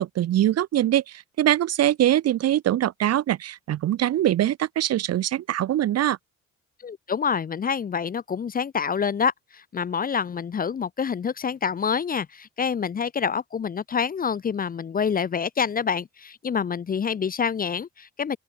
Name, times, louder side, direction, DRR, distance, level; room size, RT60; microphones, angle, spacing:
voice 1, 0.0-6.2, right 12 dB, 55° right, 0.6 m, -23 dB
voice 2, 6.8-18.4, left 6 dB, 30° left, 0.5 m, -27 dB
open air
cardioid pair, 90°, 30 cm